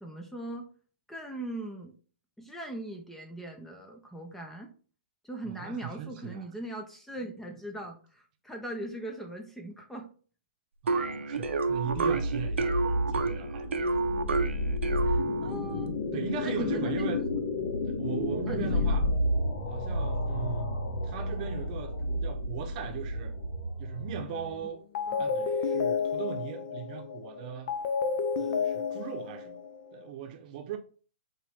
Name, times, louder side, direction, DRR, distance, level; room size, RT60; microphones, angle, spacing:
voice 1, 0.0-0.7 1.1-1.9 2.4-4.7 5.2-10.1 15.0-15.9 16.4-17.2 18.5-19.0 25.1-25.3, right 1 dB, 5° left, 0.6 m, -40 dB
voice 2, 5.6-6.4 10.8-13.7 16.1-17.2 17.9-19.1 19.7-23.3 23.8-24.8 25.2-27.7 28.4-29.6 29.9-30.8, right 7 dB, 40° right, 0.8 m, -38 dB
sound 1, 10.9-15.7, right 3 dB, 85° right, 0.7 m, -29 dB
sound 2, 11.4-24.6, left 1 dB, 75° left, 2.5 m, -31 dB
sound 3, 24.3-24.6 24.9-30.1, left 5 dB, 50° left, 0.7 m, -31 dB
4.8 x 3.0 x 3.5 m
hypercardioid pair, 140°, 6 cm